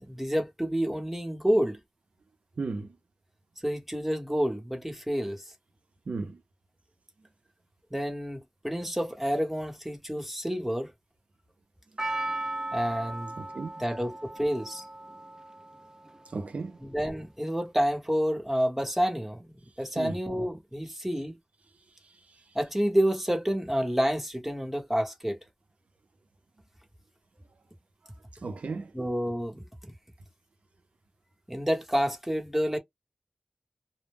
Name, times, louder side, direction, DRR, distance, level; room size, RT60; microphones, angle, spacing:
voice 1, 0.0-1.8 3.6-5.4 7.9-10.9 12.7-13.3 13.8-14.8 16.8-19.5 19.8-21.3 22.5-25.4 28.9-29.9 31.5-32.8, equal, 5° right, 1.0 m, -29 dB
voice 2, 2.6-3.0 6.1-6.4 13.4-13.7 16.3-16.8 20.0-20.2 28.4-28.9, right 3 dB, 75° right, 0.6 m, -34 dB
Percussion, 12.0-16.3 16.6-16.7, right 2 dB, 25° right, 0.5 m, -37 dB
2.2 x 2.0 x 3.4 m
wide cardioid pair, 85°, 2 cm